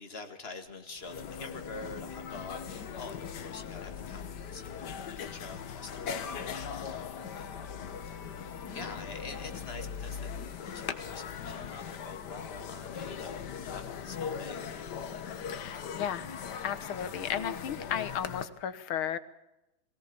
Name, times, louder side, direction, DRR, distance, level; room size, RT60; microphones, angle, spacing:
voice 1, 0.0-8.2 8.7-10.3 10.6-15.0, left 3 dB, 30° left, 6 dB, 2.2 m, -46 dB
sound 1, 0.7-0.8 1.0-18.4, left 7 dB, 60° left, 1.7 m, -40 dB
voice 2, 15.5-16.3 16.6-19.2, left 9 dB, 85° left, 13 dB, 2.0 m, -34 dB
23.0 x 17.0 x 7.0 m, 0.91 s
omnidirectional pair, 2.2 m